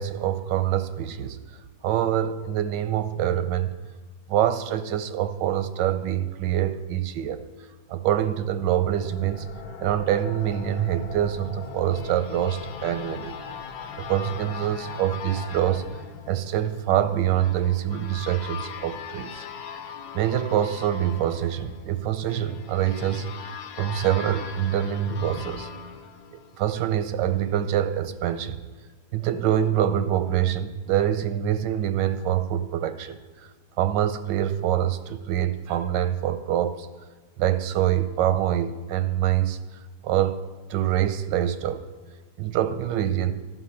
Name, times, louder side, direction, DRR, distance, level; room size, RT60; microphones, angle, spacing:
voice 1, 0.0-1.4 1.8-3.7 4.3-7.4 7.9-9.5 9.8-13.4 14.0-15.8 16.3-19.4 20.1-25.7 26.3-28.6 29.1-33.2 33.8-36.9 37.4-39.6 40.0-40.4 40.7-41.8 42.4-43.3, right 11 dB, 90° right, 11 dB, 1.3 m, -25 dB
sound 1, 9.0-20.3, left 4 dB, 65° left, 1.2 m, -43 dB
sound 2, 11.3-27.0, left 7 dB, 85° left, 1.4 m, -40 dB
12.5 x 5.7 x 5.7 m, 1.4 s
omnidirectional pair, 1.9 m